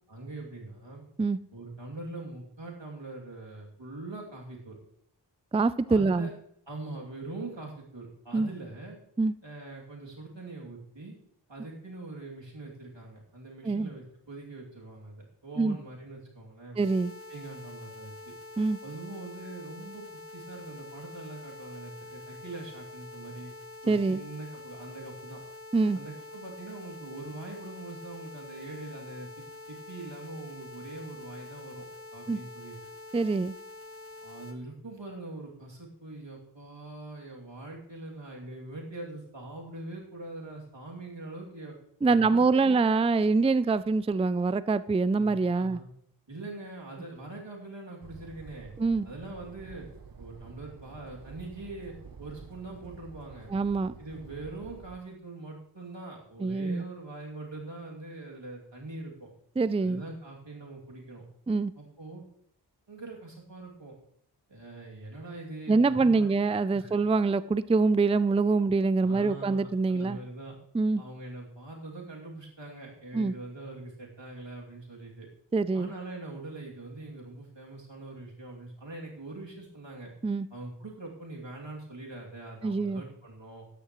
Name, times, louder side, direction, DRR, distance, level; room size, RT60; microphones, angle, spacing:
voice 1, 0.1-1.0 1.5-4.8 5.9-6.3 6.7-9.0 9.4-11.2 11.5-16.8 17.3-18.3 18.8-20.0 20.3-23.5 23.8-25.4 25.9-31.9 32.1-32.8 34.2-41.8 42.1-42.8 45.2-45.9 46.3-48.7 49.0-49.9 50.2-53.5 54.0-59.3 59.8-61.2 61.8-62.2 62.9-63.9 64.5-66.4 66.7-67.1 69.0-70.6 71.0-75.3 75.7-80.1 80.5-83.7, right 2 dB, 90° right, -2 dB, 2.8 m, -43 dB
voice 2, 5.5-6.3 8.3-8.5 9.2-9.3 13.6-13.9 15.6-15.8 16.8-17.1 18.6-18.8 23.9-24.2 25.7-26.0 32.3-32.4 33.1-33.5 42.0-45.8 48.8-49.1 53.5-53.9 56.4-56.8 59.6-60.0 61.5-61.7 65.7-70.2 70.7-71.0 73.1-73.3 75.5-75.9 80.2-80.5 82.6-83.0, right 3 dB, 15° right, 16 dB, 0.4 m, -25 dB
sound 1, 16.8-34.5, left 2 dB, 35° right, 1.9 m, -46 dB
sound 2, 48.0-55.0, right 5 dB, 55° right, 0.8 m, -49 dB
13.0 x 10.5 x 3.1 m, 0.68 s
wide cardioid pair, 40°, 43 cm